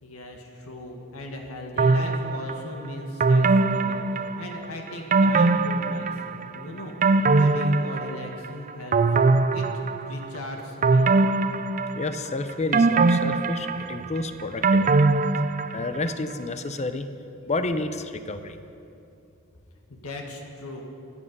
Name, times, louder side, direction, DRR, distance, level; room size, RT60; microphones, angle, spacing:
voice 1, 0.0-9.7 10.1-11.2 19.9-20.8, left 1 dB, 70° left, 2 dB, 1.8 m, -38 dB
sound 1, 1.8-2.6 3.2-4.6 5.1-6.4 6.8-8.5 8.9-10.3 10.8-12.3 12.7-16.0 16.3-16.4, right 3 dB, 35° right, 0.5 m, -21 dB
voice 2, 11.9-15.1 15.7-17.1 17.5-18.6, left 2 dB, 30° left, 9 dB, 0.7 m, -30 dB
25.5 x 8.7 x 5.5 m, 2.7 s
head